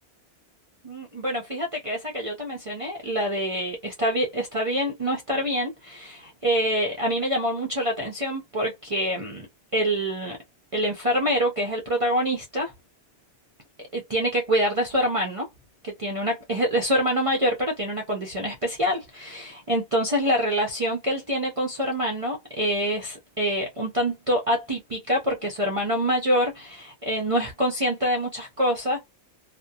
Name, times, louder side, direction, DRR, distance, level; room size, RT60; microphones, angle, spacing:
voice 1, 0.8-9.5 9.7-10.4 10.7-12.7 13.9-15.5 15.8-29.0, equal, 45° right, 0.5 m, -26 dB
2.6 x 2.1 x 2.2 m
omnidirectional pair, 1.2 m